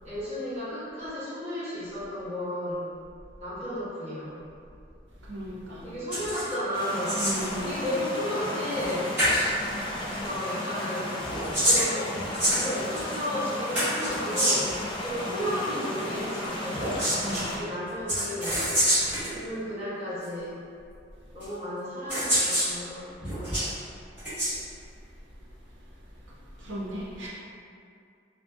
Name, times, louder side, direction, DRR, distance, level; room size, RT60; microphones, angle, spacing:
voice 1, 0.0-2.9 3.4-4.4 5.8-7.2 7.6-9.1 10.1-12.1 12.5-17.0 17.5-18.6 19.3-20.6 21.3-23.7, left 1 dB, 35° right, -13 dB, 1.0 m, -33 dB
voice 2, 5.2-5.9 7.2-7.8 17.2-17.7 26.6-27.3, equal, 90° right, -6 dB, 0.7 m, -36 dB
sound 1, 6.1-6.5 6.8-7.5 8.8-8.9 9.2-9.4 11.2-13.1 13.7-14.8 16.7-17.4 18.1-19.3 20.2-20.3 21.4-21.5 22.1-22.7 23.2-23.7 24.2-24.5, equal, 10° right, 1.3 m, -26 dB
sound 2, 6.7-17.6, left 1 dB, 25° left, 0.3 m, -34 dB
2.7 x 2.6 x 2.2 m, 2.4 s
head